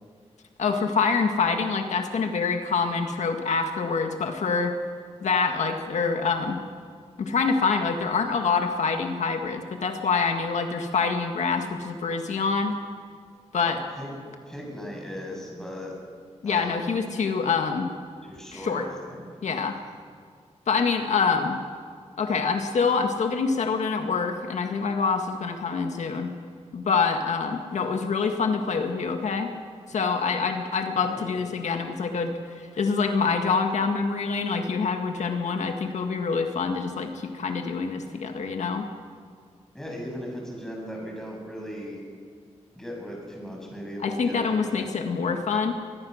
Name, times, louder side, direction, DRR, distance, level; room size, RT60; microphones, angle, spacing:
voice 1, 0.6-4.7 5.2-6.6 7.2-12.7 13.5-13.8 16.4-17.9 18.5-18.9 19.4-19.7 20.7-21.6 22.2-26.3 26.7-29.5 29.9-38.8 44.0-45.7, left 5 dB, 85° left, 4 dB, 1.7 m, -26 dB
voice 2, 13.6-14.2 14.5-15.9 16.4-17.0 18.2-19.3 19.8-19.9 30.9-31.5 39.7-42.0 42.7-44.9, equal, 5° left, -1 dB, 7.1 m, -38 dB
23.5 x 20.5 x 6.5 m, 2.1 s
wide cardioid pair, 120°, 12 cm